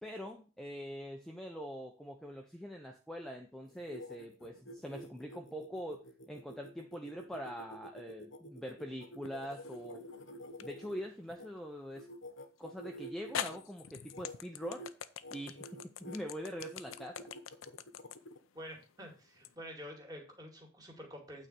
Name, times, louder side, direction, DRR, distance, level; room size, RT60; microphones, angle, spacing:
voice 1, 0.0-10.0 10.6-12.1 12.6-14.9 15.3-17.3, equal, ahead, 2 dB, 0.7 m, -44 dB
sound 1, 3.7-11.5 11.9-13.6 14.0-14.3 14.6-14.9 15.2-16.2 16.6-18.4, equal, 60° left, 1.1 m, -49 dB
sound 2, 9.2-9.8 10.6-10.7 12.6-12.7 13.3-19.5, left 9 dB, 80° left, 0.6 m, -43 dB
voice 2, 18.5-21.5, equal, 20° right, 1 dB, 2.4 m, -48 dB
8.9 x 4.3 x 6.6 m, 0.35 s
head